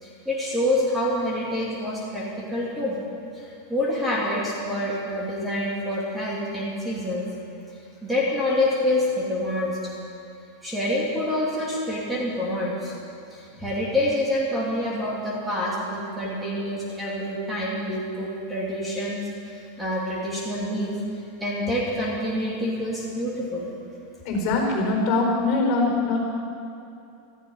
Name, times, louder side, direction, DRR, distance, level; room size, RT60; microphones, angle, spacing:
voice 1, 0.0-3.0 3.3-7.2 8.0-9.8 10.6-12.9 13.3-19.2 19.5-21.0 21.4-23.7, left 1 dB, 5° right, -5 dB, 2.6 m, -27 dB
voice 2, 24.2-26.2, left 3 dB, 45° left, 1 dB, 4.5 m, -22 dB
16.5 x 14.0 x 5.5 m, 2.7 s
supercardioid pair, 155°, 0 cm